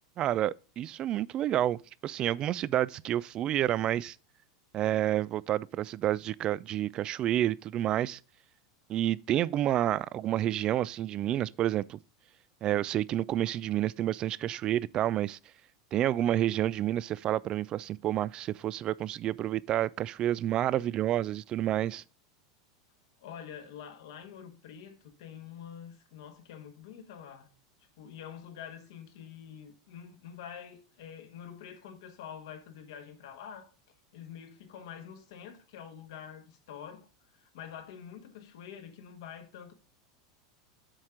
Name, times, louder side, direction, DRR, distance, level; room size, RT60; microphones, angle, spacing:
voice 1, 0.2-4.2 4.7-8.2 8.9-12.0 12.6-15.4 15.9-22.0, right 12 dB, 40° right, 0.3 m, -29 dB
voice 2, 23.2-27.5 27.8-33.7 34.1-39.7, left 8 dB, 70° left, 1.3 m, -46 dB
7.5 x 4.3 x 4.8 m
hypercardioid pair, 95°, 2 cm